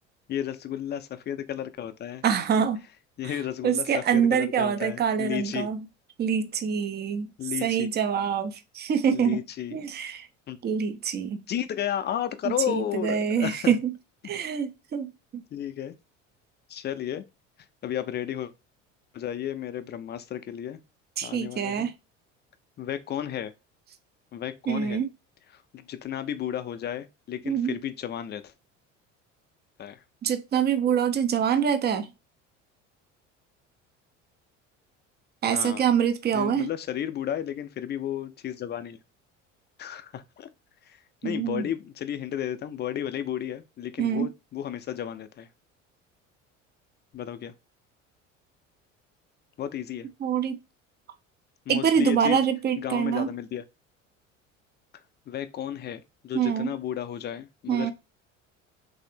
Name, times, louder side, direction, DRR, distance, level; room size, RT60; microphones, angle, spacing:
voice 1, 0.3-2.2 3.2-5.7 7.4-7.9 9.1-9.8 10.5-10.6 11.5-13.7 14.2-14.3 15.5-15.9 16.7-17.2 17.8-18.5 19.1-20.8 21.2-21.9 22.8-23.5 24.3-25.0 25.5-28.5 29.8-30.0 35.5-35.8 36.3-39.0 39.8-40.5 40.9-45.5 47.1-47.5 49.6-50.1 51.7-52.4 52.8-53.6 55.3-57.9, left 10 dB, 30° left, 0.4 m, -33 dB
voice 2, 2.2-2.8 3.6-5.9 6.2-7.3 7.6-9.4 9.7-10.3 10.6-11.4 12.4-13.9 14.2-15.4 21.2-21.9 24.7-25.1 27.4-27.7 30.2-32.1 35.4-36.7 41.2-41.7 44.0-44.3 50.2-50.6 51.7-53.3 56.3-56.7 57.7-57.9, right 8 dB, 25° right, 0.5 m, -25 dB
3.2 x 2.7 x 2.7 m
hypercardioid pair, 65°, 37 cm